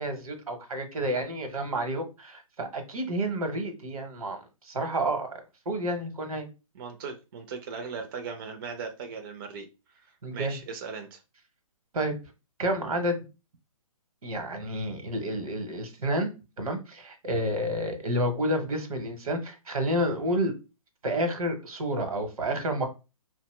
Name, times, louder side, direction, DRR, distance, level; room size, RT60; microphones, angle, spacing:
voice 1, 0.0-4.4 4.6-5.3 5.7-6.5 10.2-10.6 11.9-12.1 12.6-13.3 14.2-20.5 21.0-22.9, right 1 dB, 75° right, 0.8 m, -30 dB
voice 2, 6.7-9.7 10.3-11.2, right 5 dB, 40° right, 0.4 m, -38 dB
2.6 x 2.0 x 3.0 m
hypercardioid pair, 140°, 18 cm